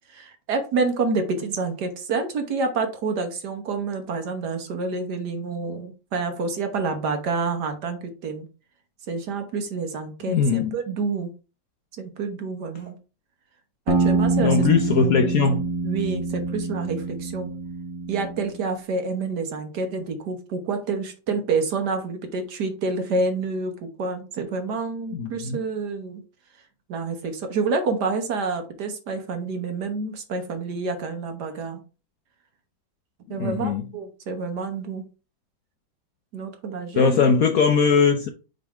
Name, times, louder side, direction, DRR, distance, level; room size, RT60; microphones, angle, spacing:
voice 1, 0.1-8.5 9.1-11.3 12.0-13.0 13.9-14.7 15.8-17.5 18.1-26.2 26.9-31.8 33.3-35.0 36.3-37.2, right 4 dB, 60° right, 1.6 m, -28 dB
voice 2, 10.3-10.7 14.4-15.6 25.1-25.6 33.4-33.8 36.9-38.3, left 5 dB, 65° left, 0.9 m, -20 dB
sound 1, 13.9-18.5, right 3 dB, 10° right, 1.1 m, -25 dB
6.2 x 3.4 x 4.7 m
omnidirectional pair, 2.1 m